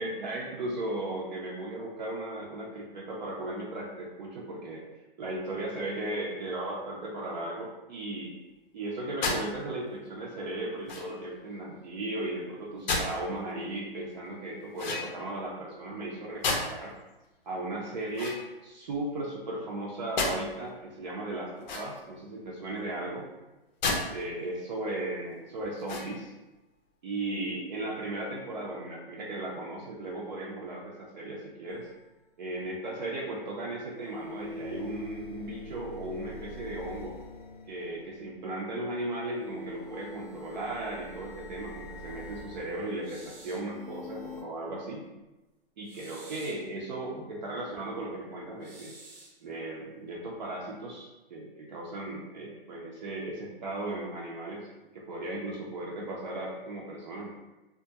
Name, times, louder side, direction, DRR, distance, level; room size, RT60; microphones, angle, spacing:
voice 1, 0.0-4.8 5.2-8.3 8.7-16.9 17.4-23.3 24.1-26.3 27.0-31.9 32.4-37.2 37.7-45.0 45.8-48.9 49.4-54.7 54.9-57.4, right 2 dB, 50° right, -3 dB, 0.5 m, -36 dB
sound 1, 9.2-9.5 10.9-11.3 12.9-13.2 14.8-15.4 16.4-16.9 18.1-19.0 20.2-20.4 21.6-22.2 23.8-24.0 24.6-24.7 25.8-26.3, left 3 dB, 50° left, 0.5 m, -32 dB
sound 2, 31.7-31.8 33.9-38.3 39.2-44.4, left 2 dB, ahead, 0.6 m, -44 dB
sound 3, 43.0-43.7 45.8-46.7 48.6-49.4, right 2 dB, 80° right, 0.8 m, -50 dB
2.3 x 2.1 x 2.7 m, 1.1 s
hypercardioid pair, 145°, 29 cm